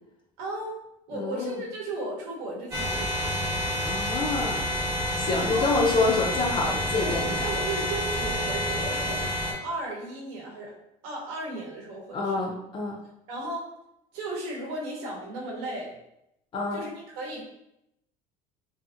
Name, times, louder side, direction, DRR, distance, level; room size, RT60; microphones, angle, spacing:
voice 1, 0.4-0.8 1.1-3.5 5.3-5.7 7.0-10.7 11.0-12.4 13.3-13.7 14.1-15.9 16.7-17.4, right 2 dB, 75° right, -3 dB, 0.8 m, -35 dB
voice 2, 1.1-1.6 3.8-4.7 5.1-7.5 12.1-13.0 16.5-16.8, left 3 dB, 30° left, 0 dB, 0.4 m, -27 dB
sound 1, 2.7-9.5, left 1 dB, 25° right, 0.7 m, -29 dB
2.7 x 2.5 x 2.4 m, 0.83 s
cardioid pair, 135°, 17 cm